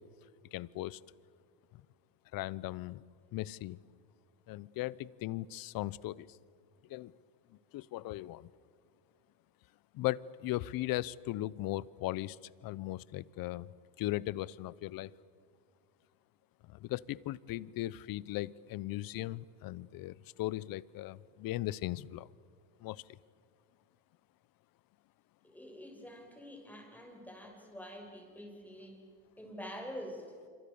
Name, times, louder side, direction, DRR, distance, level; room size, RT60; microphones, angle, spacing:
voice 1, 0.5-1.0 2.3-3.0 3.3-3.8 4.5-6.4 6.9-7.1 7.7-8.5 9.9-12.4 12.6-13.7 14.0-15.1 16.7-22.3 22.8-23.0, left 16 dB, 50° left, 22 dB, 0.8 m, -38 dB
voice 2, 25.4-29.1 29.4-30.3, equal, 5° left, 2 dB, 6.4 m, -46 dB
27.0 x 25.5 x 7.1 m, 2.2 s
supercardioid pair, 105°, 47 cm